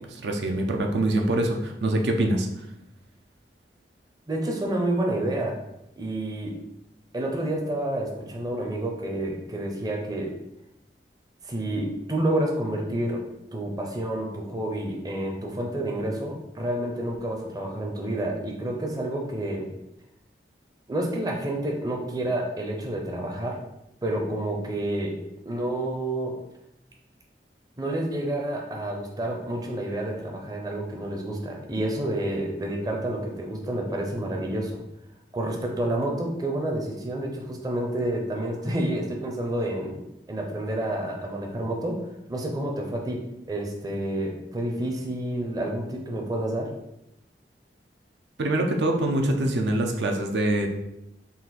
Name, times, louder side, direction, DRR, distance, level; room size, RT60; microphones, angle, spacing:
voice 1, 0.1-2.5 48.4-50.7, right 1 dB, 80° right, 3 dB, 0.5 m, -24 dB
voice 2, 4.3-5.6 6.0-6.6 7.1-10.4 11.4-13.3 13.5-19.7 20.9-23.6 24.0-25.2 25.5-26.4 27.8-34.8 35.3-40.0 40.3-46.7, right 1 dB, 20° right, 0 dB, 0.5 m, -29 dB
4.0 x 2.5 x 4.1 m, 0.86 s
head